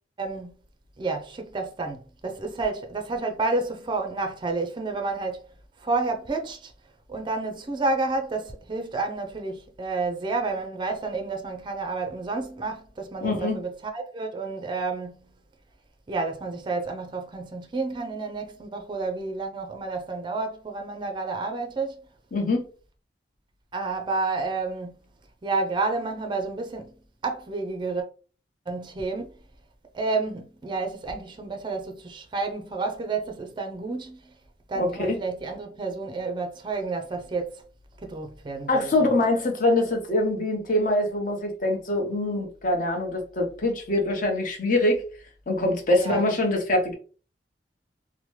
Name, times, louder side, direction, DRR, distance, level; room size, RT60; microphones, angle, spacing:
voice 1, 0.2-0.5 1.0-5.5 5.8-6.7 7.1-15.3 16.1-22.0 23.7-25.0 25.4-26.9 27.2-28.1 28.7-29.3 29.9-34.3 34.7-37.6 38.0-39.1 45.9-46.2, right 3 dB, 25° right, 0.4 m, -30 dB
voice 2, 13.2-13.6 22.3-22.7 34.7-35.2 38.7-45.0 45.5-46.9, left 1 dB, 50° left, 0.9 m, -24 dB
2.9 x 2.1 x 3.0 m
head